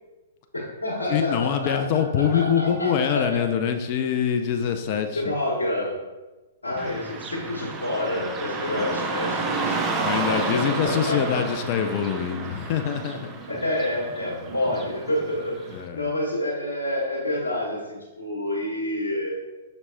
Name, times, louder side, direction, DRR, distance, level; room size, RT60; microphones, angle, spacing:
voice 1, 0.5-3.4 5.2-6.0 6.6-9.8 10.2-11.4 13.5-19.3, left 1 dB, 85° left, -5 dB, 1.1 m, -28 dB
voice 2, 1.1-5.4 6.8-7.0 8.7-9.0 10.0-13.4 15.7-16.1, left 8 dB, 40° left, 6 dB, 0.4 m, -25 dB
Car passing by / Traffic noise roadway noise, 6.8-15.8, right 3 dB, 25° right, 0.6 m, -31 dB
5.9 x 4.0 x 2.2 m, 1.2 s
figure-of-eight pair, 115°, 0 cm